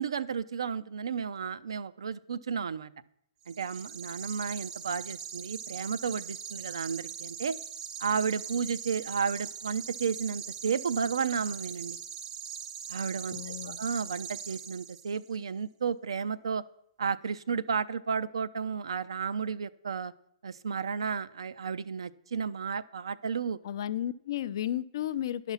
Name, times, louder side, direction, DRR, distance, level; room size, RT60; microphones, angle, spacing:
voice 1, 0.0-2.9 3.5-7.5 8.0-12.0 12.9-16.6 17.0-20.1 20.4-23.6, right 6 dB, 80° right, 15 dB, 0.4 m, -32 dB
sound 1, 3.4-15.3, right 8 dB, 30° right, 0.6 m, -41 dB
voice 2, 13.3-13.8 23.6-25.5, left 11 dB, 60° left, 16 dB, 0.4 m, -33 dB
10.5 x 5.9 x 5.6 m, 0.75 s
hypercardioid pair, 130°, 3 cm